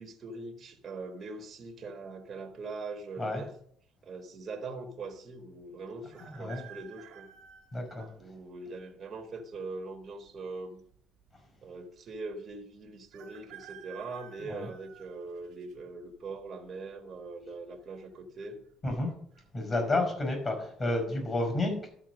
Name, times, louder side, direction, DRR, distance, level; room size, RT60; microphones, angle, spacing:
voice 1, 0.0-3.5 4.0-7.3 8.2-10.8 11.6-18.6, right 3 dB, 40° right, 3 dB, 1.5 m, -42 dB
sound 1, 6.1-8.1 8.8-8.9 10.0-10.6 10.9-11.0 11.2-11.3 13.1-15.7 16.3-16.7 17.8-18.2 18.4-18.5 19.0-19.4 19.9-20.1, right 9 dB, 80° right, 1.5 m, -52 dB
voice 2, 6.2-6.7 7.7-8.1 14.5-14.7 18.8-19.1 19.5-21.9, left 2 dB, 30° left, 2 dB, 5.2 m, -31 dB
12.5 x 4.4 x 6.2 m, 0.63 s
cardioid pair, 100°, 0 cm